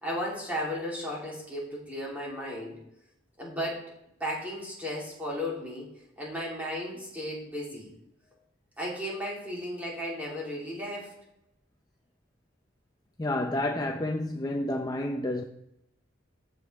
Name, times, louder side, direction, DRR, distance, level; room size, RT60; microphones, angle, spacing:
voice 1, 0.0-2.7 3.4-3.9 4.2-5.9 6.2-7.9 8.8-11.1, equal, 10° right, 3.3 m, -34 dB
voice 2, 13.2-15.4, left 1 dB, 20° left, 0.6 m, -30 dB
14.5 x 5.3 x 3.5 m
head